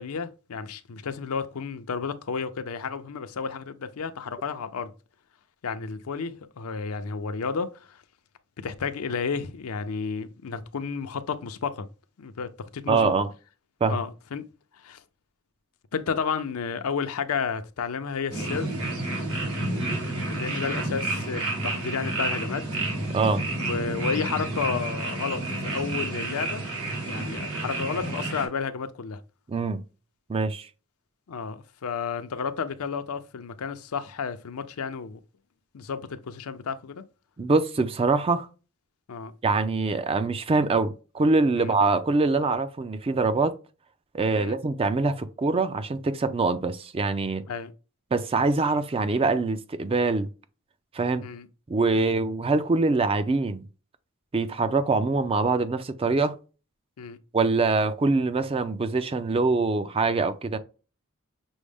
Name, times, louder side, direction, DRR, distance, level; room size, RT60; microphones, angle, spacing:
voice 1, 0.0-4.9 5.6-8.0 8.6-11.9 12.2-13.0 13.9-14.5 14.8-15.0 15.9-18.7 20.2-22.6 23.7-25.4 25.7-26.6 27.0-29.2 31.3-35.2 35.7-37.0 39.1-39.3 41.5-41.7 44.4-44.6 47.5-47.7 51.2-51.5 51.9-52.1 57.0-57.2, left 5 dB, 80° left, 0.5 m, -32 dB
voice 2, 12.9-13.3 13.8-14.0 19.8-20.1 23.1-23.4 29.5-29.8 30.3-30.7 37.4-38.5 39.4-43.5 44.1-47.4 48.1-50.3 50.9-51.3 51.7-53.6 54.3-56.4 57.3-60.6, right 3 dB, 25° right, 0.4 m, -24 dB
sound 1, 18.3-28.5, right 2 dB, 80° right, 1.6 m, -30 dB
6.2 x 2.1 x 3.4 m
head